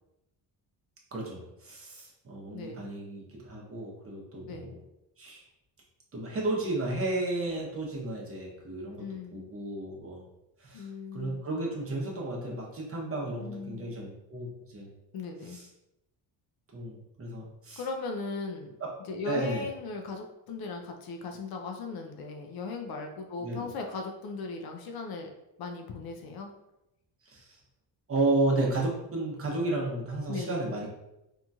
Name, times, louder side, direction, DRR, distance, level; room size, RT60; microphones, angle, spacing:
voice 1, 1.1-4.7 5.2-5.4 6.1-9.0 9.3-10.2 10.6-14.9 15.4-15.7 16.7-17.8 18.8-18.9 19.2-19.7 23.4-23.7 27.2-27.6 28.1-30.9, right 2 dB, 30° right, -2 dB, 0.8 m, -33 dB
voice 2, 2.5-2.9 4.5-4.8 9.0-9.5 10.7-11.4 13.4-13.9 15.1-15.6 17.8-18.7 19.1-25.3 25.6-26.5 30.3-30.7, left 4 dB, 55° left, 3 dB, 0.5 m, -38 dB
2.9 x 2.6 x 2.3 m, 0.90 s
cardioid pair, 115°, 44 cm